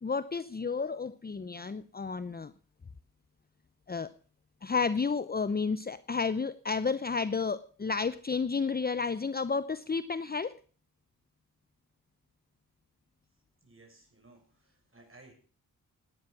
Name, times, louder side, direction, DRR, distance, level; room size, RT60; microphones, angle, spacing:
voice 1, 0.0-2.5 3.9-4.1 4.6-10.6, left 5 dB, 25° left, 15 dB, 0.8 m, -31 dB
voice 2, 13.6-15.3, right 2 dB, 35° right, 3 dB, 6.8 m, -57 dB
19.0 x 9.6 x 6.0 m, 0.41 s
supercardioid pair, 45°, 36 cm